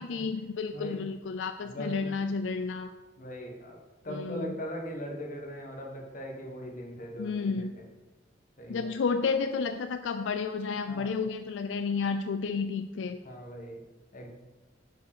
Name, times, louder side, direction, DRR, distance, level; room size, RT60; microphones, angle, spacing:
voice 1, 0.0-2.9 4.1-4.5 7.2-7.7 8.7-13.2, left 5 dB, 80° left, 9 dB, 0.4 m, -31 dB
voice 2, 0.7-1.1 1.6-2.2 3.2-3.8 4.0-7.9 8.6-8.9 10.9-11.1 13.2-13.8 14.1-14.3, equal, 45° left, 1 dB, 1.4 m, -40 dB
6.4 x 4.8 x 6.7 m, 1.2 s
head